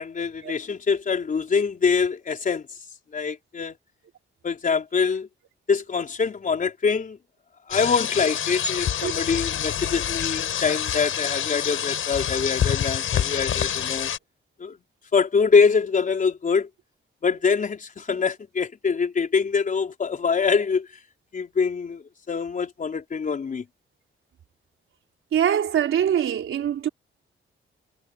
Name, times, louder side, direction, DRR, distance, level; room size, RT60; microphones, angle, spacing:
voice 1, 0.0-2.6 3.1-3.8 4.4-5.3 5.7-7.2 7.7-14.1 14.6-14.8 15.1-16.7 17.2-20.9 21.3-23.6, left 5 dB, 40° left, 4.7 m, -24 dB
sound 1, 7.7-14.2, left 9 dB, 90° left, 6.5 m, -27 dB
voice 2, 25.3-26.9, right 9 dB, 85° right, 4.1 m, -23 dB
wide cardioid pair, 160°, 21 cm